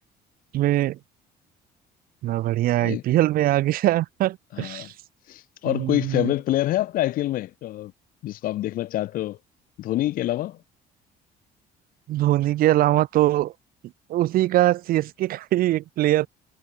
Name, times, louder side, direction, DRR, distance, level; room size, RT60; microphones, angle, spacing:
voice 1, 0.5-1.0 2.2-4.9 5.6-6.3 12.1-13.5 14.1-16.3, right 15 dB, 60° right, 0.4 m, -22 dB
voice 2, 4.5-4.9 5.3-7.9 8.2-9.4 9.8-10.6, left 15 dB, 55° left, 0.4 m, -26 dB
cardioid pair, 110°, 17 cm